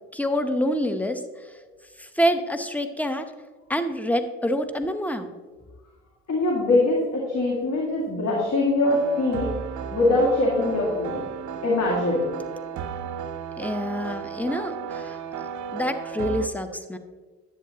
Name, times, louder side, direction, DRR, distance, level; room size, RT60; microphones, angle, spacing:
voice 1, 0.1-1.2 2.0-3.2 3.7-5.3 13.6-15.2 15.7-17.0, equal, 5° left, 9 dB, 0.9 m, -26 dB
voice 2, 6.3-9.5 9.9-11.2 11.6-12.3, left 2 dB, 50° left, -3 dB, 2.1 m, -22 dB
sound 1, 8.8-16.5, right 7 dB, 60° right, 0.8 m, -34 dB
10.5 x 8.3 x 2.8 m, 1.3 s
hypercardioid pair, 55°, 34 cm